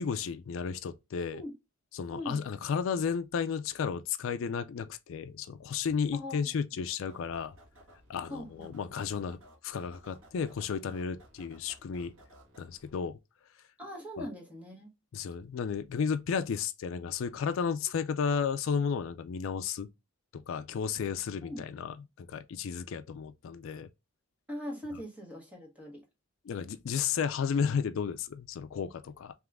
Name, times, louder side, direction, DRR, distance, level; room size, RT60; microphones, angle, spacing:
voice 1, 0.0-1.4 1.9-7.5 8.1-9.4 9.6-12.1 12.6-13.2 14.2-14.3 15.1-19.9 20.3-23.9 26.5-29.3, left 6 dB, 65° left, 0.3 m, -33 dB
voice 2, 2.1-2.4 6.1-6.5 8.3-8.7 13.8-14.9 21.4-21.6 24.5-26.0, equal, 5° right, 1.1 m, -41 dB
sound 1, 7.1-12.9, right 1 dB, 75° right, 2.0 m, -57 dB
3.6 x 3.0 x 3.4 m
head